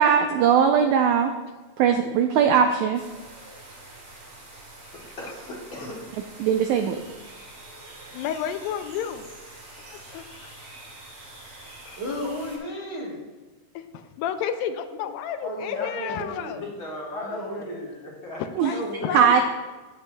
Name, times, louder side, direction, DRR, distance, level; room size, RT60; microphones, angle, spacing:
voice 1, 0.0-1.3 1.8-3.0 6.4-7.0 18.6-18.7 19.1-19.4, right 7 dB, 90° right, 5 dB, 1.6 m, -19 dB
sound 1, 2.9-12.6, right 2 dB, 65° right, 5.0 m, -45 dB
voice 2, 4.9-6.1 11.6-11.7 16.5-18.4, left 1 dB, 45° left, -4 dB, 1.8 m, -39 dB
voice 3, 8.1-9.3 9.9-10.6 11.9-12.0 13.8-16.6 18.6-19.4, left 9 dB, 85° left, 9 dB, 2.4 m, -31 dB
voice 4, 12.0-13.2 15.4-16.5 17.1-17.9 18.6-19.3, left 1 dB, 35° right, -4 dB, 1.0 m, -33 dB
16.5 x 9.3 x 2.2 m, 1.3 s
omnidirectional pair, 4.1 m